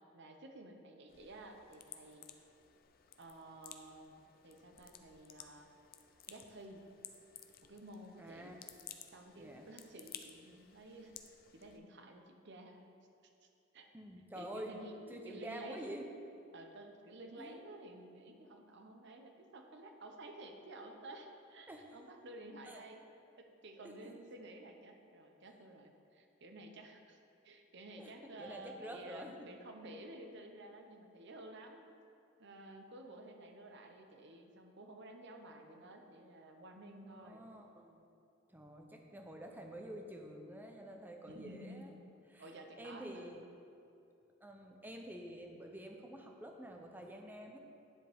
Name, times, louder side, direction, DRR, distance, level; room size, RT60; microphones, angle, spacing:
voice 1, 0.1-2.3 3.2-5.7 6.3-6.8 7.6-8.6 9.1-11.1 11.5-12.8 13.4-13.5 13.7-13.9 14.3-14.9 15.2-15.9 16.5-23.0 23.4-27.2 27.4-31.9 32.4-37.4 41.3-41.9 42.4-43.3, right 1 dB, 60° right, 4 dB, 0.9 m, -52 dB
sound 1, 1.1-11.8, left 9 dB, 50° left, 0.5 m, -56 dB
voice 2, 8.2-8.7 9.4-9.7 13.9-14.8 15.1-16.1 17.4-17.6 21.7-21.9 22.7-22.8 23.8-24.1 28.0-29.5 37.1-38.0 38.5-41.9 42.3-43.4 44.4-47.6, right 1 dB, 10° right, 2 dB, 0.7 m, -48 dB
Keyboard (musical), 14.8-17.7, right 4 dB, 15° left, 1.5 m, -61 dB
10.0 x 7.1 x 3.6 m, 2.7 s
head